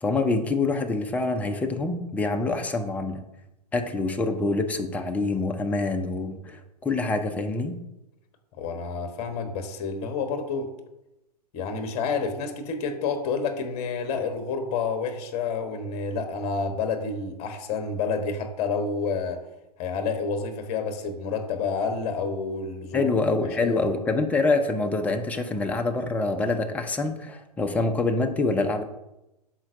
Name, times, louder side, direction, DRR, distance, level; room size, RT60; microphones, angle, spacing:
voice 1, 0.0-3.2 3.7-7.8 22.9-28.8, left 3 dB, 5° left, 5 dB, 0.6 m, -26 dB
voice 2, 8.6-10.7 11.5-19.4 19.8-23.1 23.6-23.9, left 4 dB, 30° left, 6 dB, 1.1 m, -29 dB
11.5 x 4.5 x 2.6 m, 0.93 s
figure-of-eight pair, 110°, 21 cm